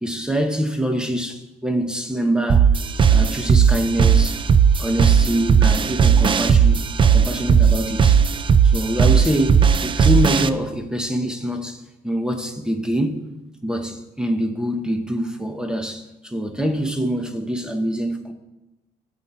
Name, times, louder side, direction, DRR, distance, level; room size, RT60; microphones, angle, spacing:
voice 1, 0.0-2.7 3.1-4.4 4.8-8.2 8.6-13.2 13.6-18.3, equal, 5° right, 1.1 m, -25 dB
sound 1, 2.5-10.5, right 7 dB, 30° right, 0.5 m, -16 dB
14.5 x 7.3 x 4.4 m
cardioid pair, 110°, 17 cm